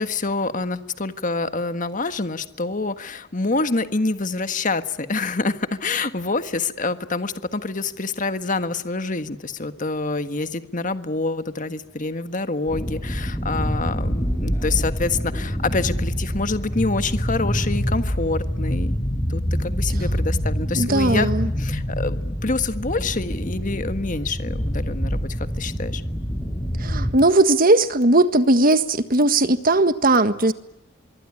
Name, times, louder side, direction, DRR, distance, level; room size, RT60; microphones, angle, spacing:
voice 1, 0.0-19.0 19.3-21.3 21.6-26.0, left 3 dB, 40° left, 1.5 m, -26 dB
sound 1, 12.7-27.1, equal, 15° left, 5.8 m, -26 dB
voice 2, 20.7-21.5 26.8-30.5, right 2 dB, 45° right, 1.7 m, -18 dB
25.5 x 23.5 x 9.8 m
head